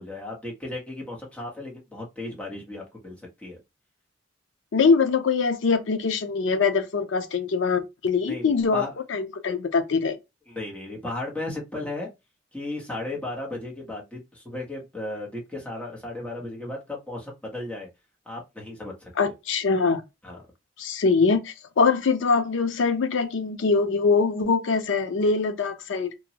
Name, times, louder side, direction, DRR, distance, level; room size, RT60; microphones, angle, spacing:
voice 1, 0.0-3.6 8.3-8.9 10.5-12.1 12.5-17.9 18.3-19.3 20.2-20.4, left 2 dB, 5° left, 0.8 m, -35 dB
voice 2, 4.7-8.8 9.1-10.2 19.2-20.0 20.8-26.1, left 4 dB, 85° left, 0.5 m, -23 dB
2.9 x 2.2 x 2.7 m
head